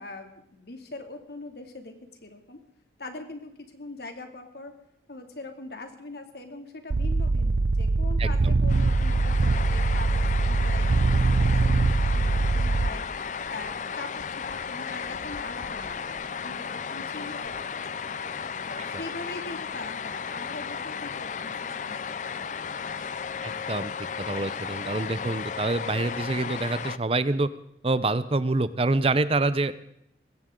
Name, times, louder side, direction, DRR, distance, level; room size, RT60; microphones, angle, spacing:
voice 1, 0.0-2.0 2.2-2.6 3.0-4.7 5.1-13.0 13.5-18.2 18.6-21.5 21.8-22.4, left 2 dB, 65° left, 5 dB, 2.6 m, -42 dB
sound 1, 6.9-12.9, right 3 dB, 70° right, 0.6 m, -23 dB
sound 2, 8.7-27.0, left 6 dB, 45° left, 0.5 m, -34 dB
voice 2, 23.4-23.9 24.2-27.5 27.8-29.7, right 2 dB, 35° right, 14 dB, 0.6 m, -26 dB
21.0 x 16.5 x 3.8 m, 0.78 s
head